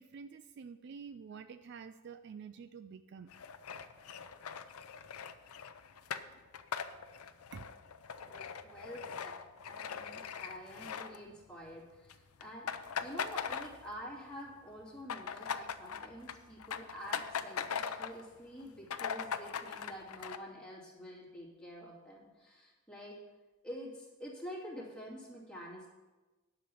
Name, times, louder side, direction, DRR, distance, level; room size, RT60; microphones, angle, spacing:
voice 1, 0.0-3.4 7.5-7.7 8.7-9.0, right 6 dB, 50° right, 11 dB, 0.3 m, -49 dB
sound 1, 3.3-11.7 12.0-12.1 12.4-14.2 14.5-18.2 18.6-18.7 18.9-20.4, left 7 dB, 90° left, 0.6 m, -41 dB
voice 2, 8.3-9.3 9.7-12.7 13.0-23.2 23.6-25.9, equal, 5° left, -5 dB, 2.5 m, -48 dB
10.5 x 5.9 x 6.9 m, 1.2 s
head